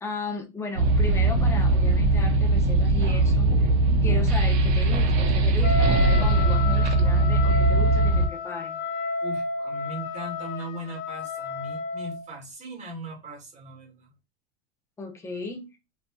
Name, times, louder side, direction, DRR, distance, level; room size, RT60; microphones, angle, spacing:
voice 1, 0.0-3.7 4.0-8.8 15.0-15.8, left 3 dB, 10° left, 0.5 m, -36 dB
sound 1, 0.8-8.3, right 2 dB, 65° right, 0.8 m, -20 dB
Wind instrument woodwind instrument, 5.6-12.2, left 3 dB, 55° left, 0.9 m, -31 dB
voice 2, 9.2-14.1, right 1 dB, 20° right, 1.1 m, -39 dB
3.1 x 2.6 x 2.2 m
hypercardioid pair, 125°, 34 cm